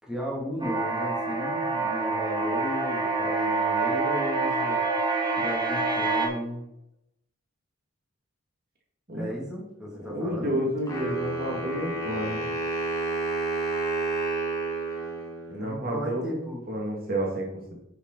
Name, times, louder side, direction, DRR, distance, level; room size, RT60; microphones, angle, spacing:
voice 1, 0.0-4.8 5.3-6.6 9.1-10.6 15.5-16.6, equal, 5° right, -4 dB, 2.7 m, -35 dB
sound 1, 0.6-6.3, right 3 dB, 20° right, 1.9 m, -27 dB
voice 2, 10.1-12.5 15.5-17.6, right 1 dB, 45° right, -2 dB, 2.2 m, -30 dB
Wind instrument woodwind instrument, 10.9-15.9, right 2 dB, 15° left, 2.1 m, -30 dB
10.0 x 6.9 x 4.1 m, 0.81 s
head